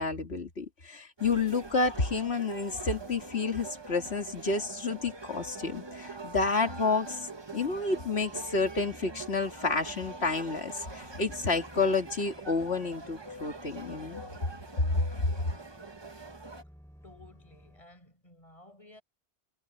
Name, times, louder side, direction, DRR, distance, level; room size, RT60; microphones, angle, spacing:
voice 1, 0.0-14.2 14.8-14.9, left 4 dB, 70° left, 2.5 m, -30 dB
sound 1, 1.2-16.6, right 3 dB, 25° right, 1.3 m, -44 dB
sound 2, 7.6-17.8, equal, ahead, 5.9 m, -56 dB
voice 2, 17.0-19.0, left 2 dB, 30° left, 7.4 m, -54 dB
omnidirectional pair, 1.1 m